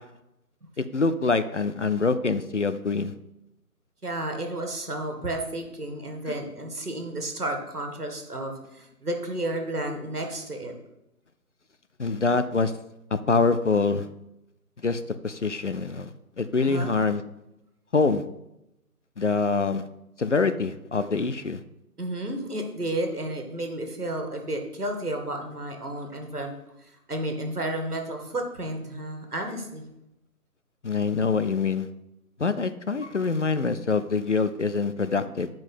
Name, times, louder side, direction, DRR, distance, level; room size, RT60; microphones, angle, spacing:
voice 1, 0.8-3.1 6.3-6.4 12.0-12.7 13.1-14.1 14.8-16.1 16.4-17.2 17.9-18.2 19.2-19.8 20.2-21.6 30.8-31.9 32.4-35.5, left 4 dB, 50° left, 12 dB, 0.6 m, -25 dB
voice 2, 4.0-10.7 16.6-16.9 22.0-29.8 35.2-35.3, right 1 dB, 75° right, 4 dB, 1.9 m, -32 dB
8.8 x 5.2 x 5.6 m, 0.86 s
figure-of-eight pair, 155°, 46 cm